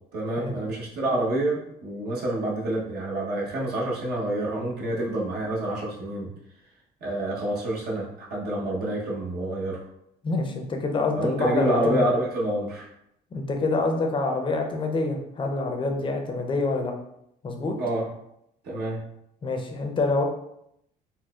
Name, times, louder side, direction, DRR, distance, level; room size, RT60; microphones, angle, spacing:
voice 1, 0.1-6.3 7.0-9.8 11.2-12.9 17.8-18.1 18.6-19.0, right 1 dB, 70° right, -3 dB, 1.0 m, -27 dB
voice 2, 10.2-12.0 13.3-16.9 17.4-17.7 19.4-20.2, left 3 dB, 30° left, 3 dB, 0.5 m, -26 dB
4.2 x 2.1 x 2.3 m, 0.78 s
cardioid pair, 110°, 17 cm